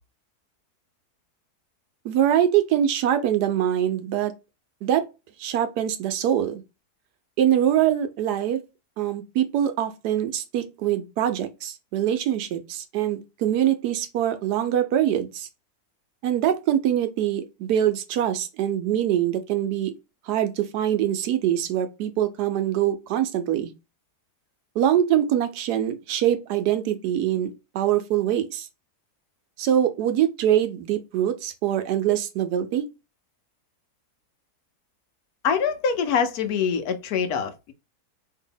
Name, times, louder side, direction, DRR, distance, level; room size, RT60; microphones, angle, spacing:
voice 1, 2.0-4.3 4.8-5.0 5.4-6.6 7.4-8.6 9.0-15.5 16.2-19.9 20.3-23.7 24.8-27.5 27.7-28.7 29.6-32.8, right 10 dB, 80° right, 1.2 m, -23 dB
voice 2, 35.4-37.7, left 6 dB, 70° left, 1.1 m, -24 dB
2.8 x 2.7 x 3.7 m
omnidirectional pair, 1.7 m